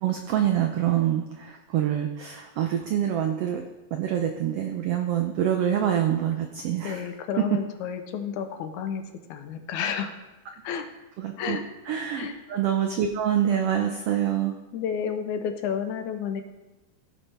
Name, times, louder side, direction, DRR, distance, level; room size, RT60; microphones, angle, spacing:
voice 1, 0.0-3.6 3.9-7.0 7.4-7.6 11.2-11.6 11.9-14.5, right 10 dB, 85° right, 4 dB, 1.3 m, -26 dB
voice 2, 6.8-9.0 9.3-10.1 10.6-10.9 11.4-11.6 12.1-12.4 14.7-16.4, left 7 dB, 80° left, 7 dB, 2.1 m, -31 dB
16.5 x 5.5 x 3.3 m, 1.1 s
omnidirectional pair, 3.6 m